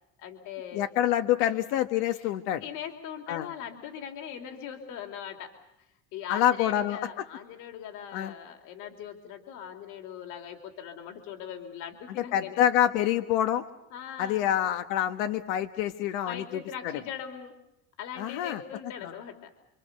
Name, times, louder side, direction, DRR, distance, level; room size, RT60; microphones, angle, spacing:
voice 1, 0.2-0.9 1.4-1.5 2.1-2.3 2.6-5.5 6.1-12.6 13.9-14.4 16.2-17.5 18.0-19.5, left 9 dB, 55° left, 5 dB, 3.3 m, -40 dB
voice 2, 0.7-2.6 3.3-3.5 6.3-7.0 8.1-8.3 12.3-13.6 14.2-16.9 18.2-18.6 19.0-19.1, left 11 dB, 90° left, 8 dB, 1.5 m, -26 dB
29.5 x 25.0 x 6.8 m, 0.90 s
cardioid pair, 180°, 37 cm